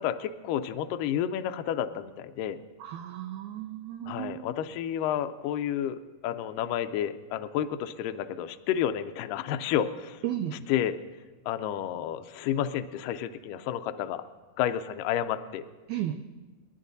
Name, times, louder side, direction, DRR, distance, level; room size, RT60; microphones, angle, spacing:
voice 1, 0.0-2.6 4.1-10.2 10.7-11.0 11.5-14.2 14.6-15.6, left 10 dB, 80° left, 9 dB, 2.1 m, -30 dB
voice 2, 2.8-4.4 10.2-10.5 15.9-16.2, right 12 dB, 85° right, 8 dB, 1.7 m, -34 dB
29.5 x 11.5 x 2.6 m, 1.3 s
omnidirectional pair, 4.1 m